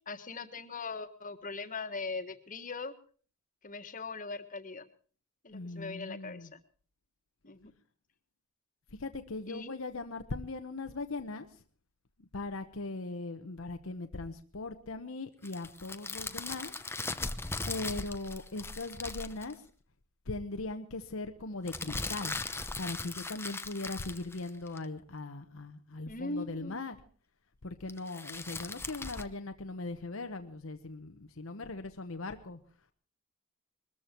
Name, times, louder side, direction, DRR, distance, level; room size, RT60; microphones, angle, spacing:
voice 1, 0.1-2.9 3.6-4.8 5.4-6.6 7.4-7.7 9.5-9.7 26.1-26.8, left 3 dB, 40° left, 8 dB, 1.7 m, -40 dB
voice 2, 5.5-6.5 9.0-11.5 12.3-16.7 17.7-19.6 20.3-22.4 22.8-27.0 27.6-32.6, left 2 dB, 75° left, 7 dB, 1.0 m, -39 dB
sound 1, 15.4-19.5 21.7-24.8 27.9-29.2, left 3 dB, 10° left, 0.9 m, -39 dB
21.5 x 14.0 x 4.5 m, 0.42 s
head